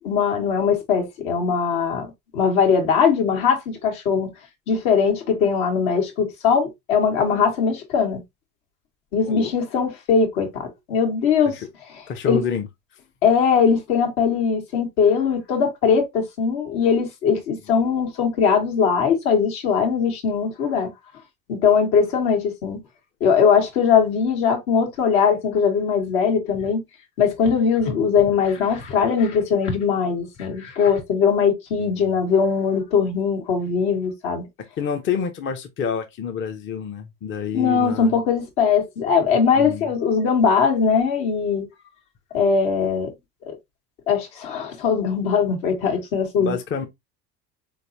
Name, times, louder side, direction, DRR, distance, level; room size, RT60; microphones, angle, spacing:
voice 1, 0.0-2.1 2.3-4.3 4.7-8.2 9.1-11.5 12.2-12.4 13.2-20.9 21.5-22.8 23.2-26.8 27.2-34.5 37.5-41.6 42.3-43.1 43.5-43.6 44.1-46.6, left 6 dB, 60° left, 1.6 m, -20 dB
voice 2, 12.1-12.7 31.8-32.2 34.6-38.1 39.5-39.9 46.4-46.9, left 7 dB, 25° left, 0.6 m, -28 dB
4.2 x 3.3 x 2.6 m
figure-of-eight pair, 65°, 48 cm